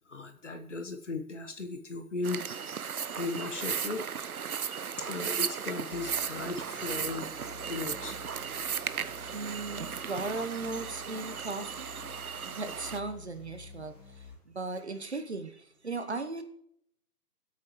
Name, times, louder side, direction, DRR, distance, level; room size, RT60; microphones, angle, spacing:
voice 1, 0.1-2.4 3.2-4.1 5.0-7.3 7.6-8.2, left 3 dB, 50° left, 7 dB, 1.3 m, -36 dB
sound 1, 2.2-13.0, right 7 dB, 65° right, 0.7 m, -36 dB
voice 2, 4.9-5.3 9.3-11.9 12.4-16.4, right 3 dB, 45° right, 9 dB, 1.0 m, -37 dB
sound 2, 5.9-14.4, left 5 dB, 30° left, 4.3 m, -51 dB
25.0 x 8.4 x 3.1 m, 0.71 s
figure-of-eight pair, 170°, 47 cm